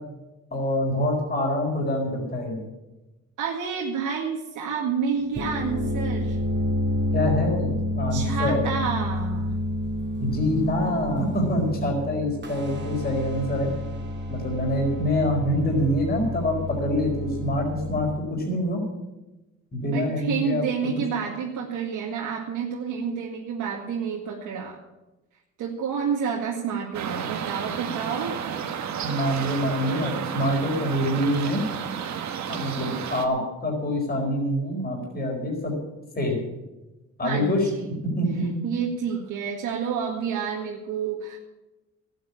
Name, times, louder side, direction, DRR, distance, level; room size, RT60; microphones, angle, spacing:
voice 1, 0.5-2.6 7.1-8.6 10.2-13.7 14.3-18.8 19.7-20.9 29.0-31.6 32.5-35.7 36.1-36.4 37.2-37.7 38.1-38.6, left 1 dB, 30° left, -1 dB, 4.6 m, -25 dB
voice 2, 3.4-6.4 8.1-9.5 19.9-24.8 25.6-28.4 37.2-37.9 38.6-41.4, right 6 dB, 80° right, -2 dB, 2.0 m, -29 dB
sound 1, 5.2-18.1, left 1 dB, 35° right, 2.5 m, -29 dB
sound 2, 26.9-33.3, right 8 dB, 65° right, 1.5 m, -32 dB
12.0 x 9.4 x 8.6 m, 1.0 s
cardioid pair, 90°, 30 cm